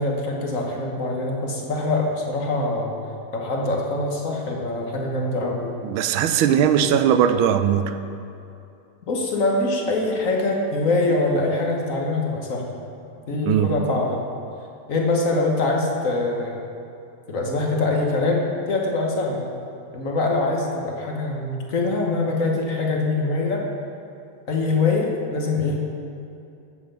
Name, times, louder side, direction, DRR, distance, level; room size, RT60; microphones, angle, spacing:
voice 1, 0.0-2.9 3.3-5.7 6.7-6.9 9.1-12.7 13.3-14.2 14.9-16.6 17.3-19.6 19.9-23.6 24.5-26.0, left 2 dB, 45° left, 0 dB, 1.3 m, -24 dB
voice 2, 5.8-7.9 13.4-13.7, right 9 dB, 75° right, 9 dB, 1.3 m, -19 dB
8.0 x 7.8 x 6.8 m, 2.7 s
omnidirectional pair, 2.4 m